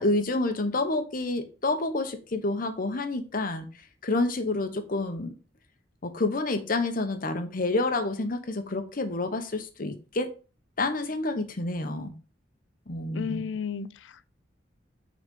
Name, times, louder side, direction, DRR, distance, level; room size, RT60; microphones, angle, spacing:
voice 1, 0.0-3.7 4.0-5.3 6.0-10.3 10.8-12.1 12.9-13.4, left 2 dB, 50° left, 1.0 m, -28 dB
voice 2, 13.1-14.4, left 6 dB, 75° left, 0.4 m, -34 dB
6.2 x 4.1 x 5.3 m
head